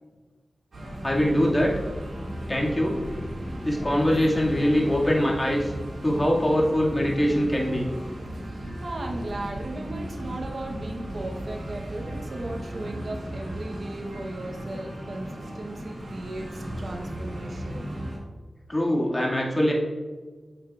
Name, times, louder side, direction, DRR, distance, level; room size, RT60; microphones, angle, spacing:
sound 1, 0.7-18.2, right 1 dB, 85° right, 1.9 m, -35 dB
voice 1, 1.0-1.7 2.5-3.0 3.6-5.7 6.0-7.9 18.7-19.7, equal, 25° left, -3 dB, 2.1 m, -23 dB
voice 2, 8.4-17.9, right 2 dB, 65° right, 1 dB, 1.0 m, -37 dB
8.8 x 6.7 x 2.4 m, 1.4 s
cardioid pair, 50°, 0 cm